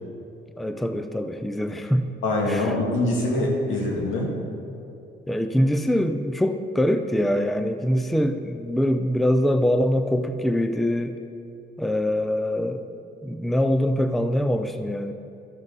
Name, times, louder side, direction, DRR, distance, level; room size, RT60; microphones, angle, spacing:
voice 1, 0.6-2.1 2.5-2.7 5.3-11.2 11.8-12.8 13.2-15.1, equal, ahead, 8 dB, 0.5 m, -23 dB
voice 2, 2.2-4.3, left 2 dB, 85° left, -2 dB, 2.1 m, -24 dB
13.0 x 7.0 x 4.1 m, 2.7 s
cardioid pair, 90°, 20 cm